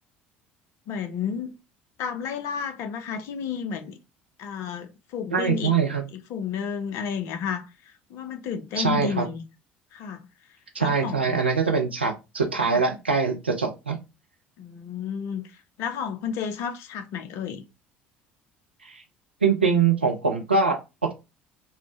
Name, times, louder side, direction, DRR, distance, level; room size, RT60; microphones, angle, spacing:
voice 1, 0.9-1.6 2.0-4.0 4.4-5.7 6.1-9.5 9.9-10.3 10.8-11.4 12.7-12.9 14.6-17.6, left 7 dB, 55° left, 0.5 m, -32 dB
voice 2, 5.3-6.0 8.8-9.3 10.7-14.0 18.8-19.0 19.4-21.1, right 5 dB, 85° right, 0.5 m, -23 dB
3.2 x 2.0 x 2.9 m
figure-of-eight pair, 60°, 6 cm